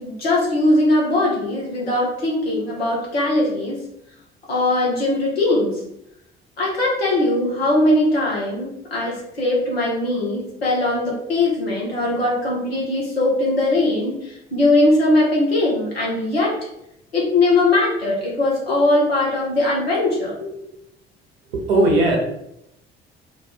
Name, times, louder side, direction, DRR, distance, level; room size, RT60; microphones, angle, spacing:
voice 1, 0.0-3.8 4.5-5.8 6.6-16.6 17.1-20.5, left 2 dB, 80° left, -4 dB, 1.1 m, -20 dB
voice 2, 21.5-22.2, right 1 dB, 70° right, -1 dB, 1.0 m, -17 dB
3.8 x 2.4 x 3.6 m, 0.80 s
figure-of-eight pair, 50°, 30 cm